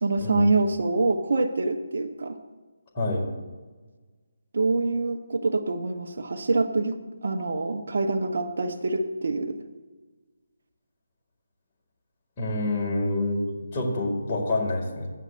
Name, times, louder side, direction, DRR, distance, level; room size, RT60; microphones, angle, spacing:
voice 1, 0.0-2.4 4.5-7.0 7.2-9.6, right 3 dB, 65° right, 4 dB, 0.8 m, -25 dB
voice 2, 2.9-3.2 12.4-15.1, left 2 dB, 30° left, -3 dB, 2.1 m, -27 dB
14.5 x 9.2 x 2.5 m, 1.3 s
figure-of-eight pair, 160°, 0 cm